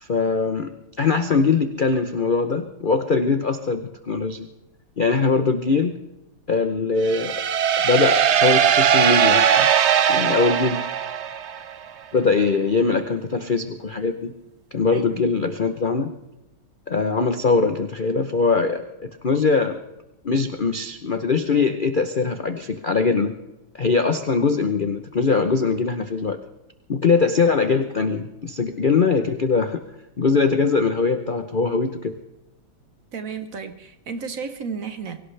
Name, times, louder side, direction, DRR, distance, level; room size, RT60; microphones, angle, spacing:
voice 1, 0.0-0.7 1.0-4.5 5.0-6.0 6.5-7.3 7.8-9.7 10.1-10.8 12.1-14.3 14.7-16.1 16.9-19.8 20.2-23.3 23.7-26.4 26.9-29.8 30.2-32.1, left 4 dB, 70° left, 8 dB, 0.4 m, -21 dB
sound 1, 7.0-11.8, right 8 dB, 80° right, 0.6 m, -19 dB
voice 2, 33.1-35.2, right 5 dB, 50° right, 9 dB, 1.3 m, -33 dB
23.5 x 17.5 x 3.3 m, 0.92 s
omnidirectional pair, 2.1 m